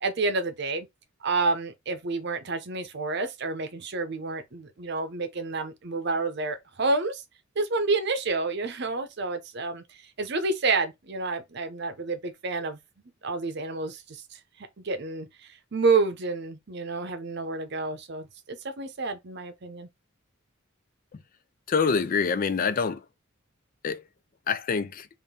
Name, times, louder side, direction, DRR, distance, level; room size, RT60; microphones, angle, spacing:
voice 1, 0.0-0.9 1.2-7.2 7.6-9.8 10.2-12.8 13.2-14.4 14.8-15.3 15.7-19.9, right 3 dB, 55° right, 0.7 m, -29 dB
voice 2, 21.7-23.0 23.8-24.0 24.5-25.1, left 5 dB, 45° left, 0.4 m, -25 dB
3.7 x 2.6 x 3.7 m
head